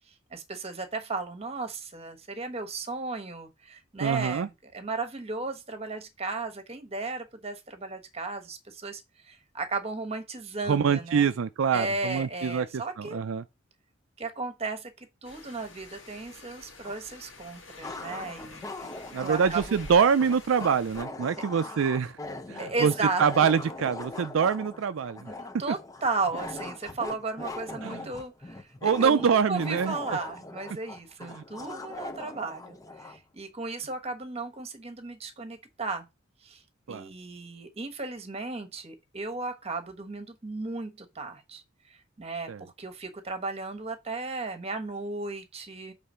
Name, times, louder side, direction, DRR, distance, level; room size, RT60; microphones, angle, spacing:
voice 1, 0.3-11.3 11.7-13.2 14.2-18.6 19.2-19.8 22.6-23.5 25.3-36.0 36.4-36.6 36.9-45.9, right 3 dB, 30° right, 1.2 m, -35 dB
voice 2, 4.0-4.5 10.7-12.7 13.0-13.4 19.1-22.2 22.5-22.9 23.2-25.2 27.8-28.0 28.8-30.0 31.2-31.4 36.9-37.1 42.5-42.6, right 6 dB, 80° right, 0.4 m, -25 dB
sound 1, 15.2-21.0, left 3 dB, 65° left, 1.9 m, -48 dB
sound 2, 16.8-16.9 17.8-33.2, left 2 dB, 15° left, 0.6 m, -41 dB
6.6 x 3.4 x 5.5 m
head